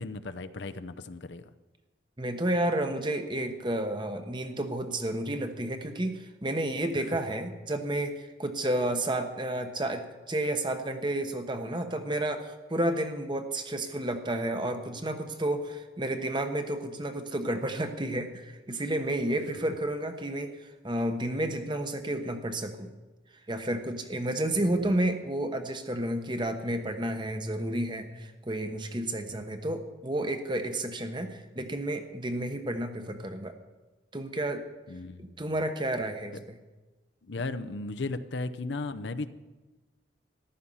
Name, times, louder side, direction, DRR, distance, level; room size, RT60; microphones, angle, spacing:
voice 1, 0.0-1.4 24.4-24.9 34.9-35.3 36.3-36.4 37.2-39.3, left 3 dB, 70° left, 10 dB, 0.7 m, -36 dB
voice 2, 2.2-22.9 23.5-33.5 34.1-34.6 35.2-36.6, right 1 dB, 25° right, 7 dB, 1.1 m, -31 dB
14.5 x 12.0 x 5.6 m, 1.2 s
head